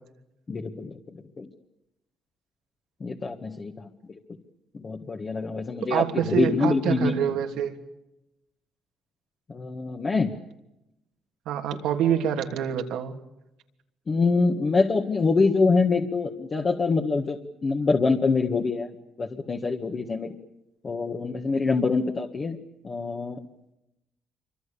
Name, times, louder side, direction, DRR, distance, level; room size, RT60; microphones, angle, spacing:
voice 1, 0.5-1.0 1.4-1.5 3.0-3.9 4.7-7.1 9.5-10.3 14.1-17.4 17.6-18.9 19.2-20.3 20.8-22.6 22.8-23.4, left 4 dB, 30° left, 0 dB, 1.9 m, -25 dB
voice 2, 5.8-7.7 11.4-13.1, right 9 dB, 85° right, 4 dB, 3.0 m, -26 dB
27.0 x 25.0 x 7.0 m, 0.89 s
cardioid pair, 130°, 0 cm